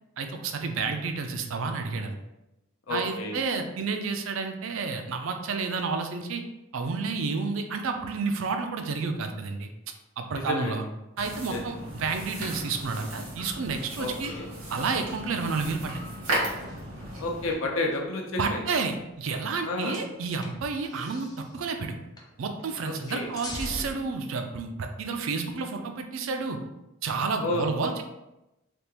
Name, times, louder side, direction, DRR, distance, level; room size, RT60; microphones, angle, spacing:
voice 1, 0.2-2.2 2.9-6.4 6.7-9.7 10.2-10.8 11.2-14.3 14.7-16.0 18.4-22.0 22.4-26.6 27.0-28.0, right 4 dB, 65° right, 5 dB, 0.4 m, -30 dB
voice 2, 2.9-3.4 10.3-10.8 11.5-11.6 14.0-14.5 17.2-18.6 19.6-20.0 22.8-23.3 27.4-28.0, left 2 dB, 70° left, 0 dB, 0.6 m, -31 dB
sound 1, 11.2-17.5, right 1 dB, 90° right, 1.2 m, -35 dB
sound 2, 16.5-18.0 18.8-19.6 19.9-21.5 22.2-22.3 22.6-23.9, left 1 dB, 20° left, 0.4 m, -42 dB
3.4 x 2.4 x 2.9 m, 0.95 s
head